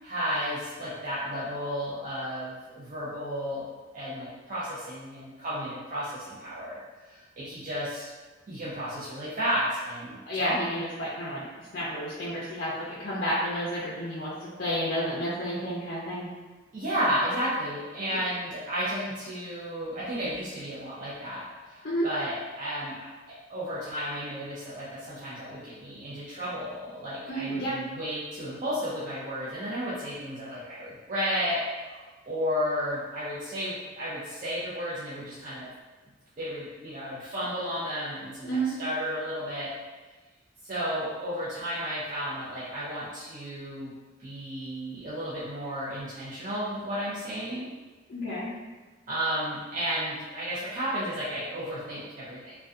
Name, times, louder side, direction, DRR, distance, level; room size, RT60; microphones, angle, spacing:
voice 1, 0.0-3.6 3.9-6.8 7.0-8.1 8.5-10.6 16.7-23.1 23.5-32.0 32.3-35.7 36.4-39.7 40.6-43.9 44.2-47.7 49.1-52.6, equal, 40° right, -10 dB, 0.4 m, -33 dB
voice 2, 10.3-11.4 11.7-16.3 21.8-22.1 27.3-27.8 38.4-38.8 48.1-48.5, equal, 50° left, -8 dB, 0.5 m, -30 dB
2.6 x 2.2 x 2.3 m, 1.3 s
head